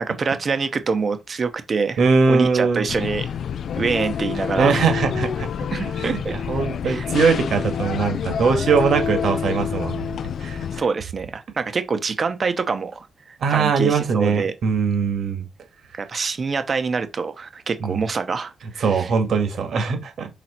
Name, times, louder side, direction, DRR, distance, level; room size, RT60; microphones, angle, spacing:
voice 1, 0.2-2.0 2.3-3.3 3.8-4.7 5.7-6.3 6.8-7.1 10.8-13.0 13.5-14.5 15.9-19.1, right 5 dB, 35° right, 0.9 m, -25 dB
voice 2, 2.0-2.9 4.6-5.5 6.0-10.0 10.4-10.7 13.4-15.5 17.8-18.1 18.8-20.3, right 5 dB, 65° right, 1.8 m, -21 dB
sound 1, 2.9-10.8, left 7 dB, 60° left, 0.4 m, -27 dB
6.1 x 3.9 x 4.3 m
cardioid pair, 140°, 0 cm